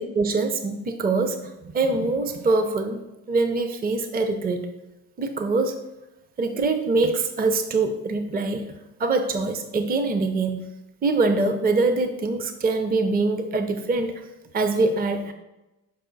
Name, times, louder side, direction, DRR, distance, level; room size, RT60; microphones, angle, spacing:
voice 1, 0.0-3.0 3.3-4.7 5.2-5.8 6.4-8.7 9.0-10.7 11.0-14.1 14.5-15.3, right 3 dB, 25° right, 8 dB, 0.6 m, -24 dB
6.8 x 4.4 x 3.9 m, 0.99 s
cardioid pair, 90°, 36 cm